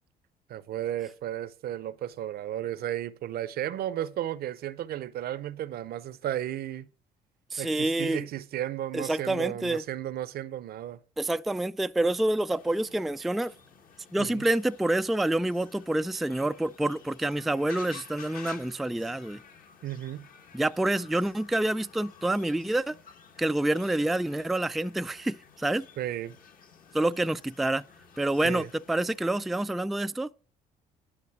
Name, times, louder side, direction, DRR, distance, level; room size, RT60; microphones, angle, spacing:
voice 1, 0.5-6.9 7.6-11.0 14.2-14.4 19.8-20.3 26.0-26.4 28.4-28.7, right 12 dB, 65° right, 0.7 m, -34 dB
voice 2, 7.5-8.3 8.9-9.8 11.2-13.5 14.1-19.4 20.5-23.0 23.4-25.8 26.9-27.8 28.2-30.3, right 1 dB, ahead, 0.3 m, -27 dB
sound 1, 12.5-29.4, left 7 dB, 55° left, 1.6 m, -52 dB
11.0 x 3.9 x 5.9 m
supercardioid pair, 70°, 17 cm